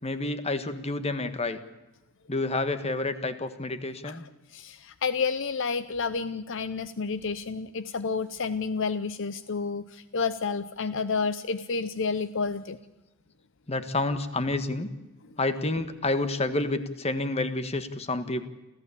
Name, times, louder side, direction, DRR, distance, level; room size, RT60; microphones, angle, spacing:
voice 1, 0.0-1.6 2.3-4.2 13.7-14.9 15.4-18.5, left 2 dB, 30° left, 10 dB, 1.5 m, -29 dB
voice 2, 4.5-12.8, left 5 dB, 60° left, 13 dB, 0.7 m, -30 dB
28.0 x 15.0 x 8.5 m, 1.1 s
head